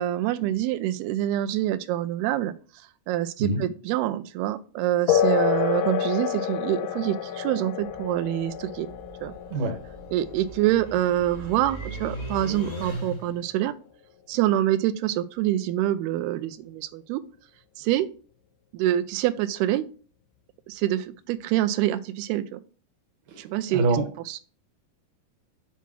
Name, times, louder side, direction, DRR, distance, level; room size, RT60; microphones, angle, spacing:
voice 1, 0.0-2.5 3.1-8.9 9.2-9.3 10.1-13.7 14.3-17.2 17.8-18.1 18.7-19.8 20.7-22.6 23.4-23.8 24.3-24.4, right 13 dB, 85° right, 12 dB, 2.6 m, -26 dB
sound 1, 5.1-13.1, left 9 dB, 85° left, 2.9 m, -29 dB
sound 2, 7.8-13.5, equal, 15° left, 1.4 m, -38 dB
voice 2, 23.3-24.0, right 3 dB, 65° right, 6 dB, 2.5 m, -26 dB
7.2 x 5.7 x 6.1 m, 0.39 s
omnidirectional pair, 4.6 m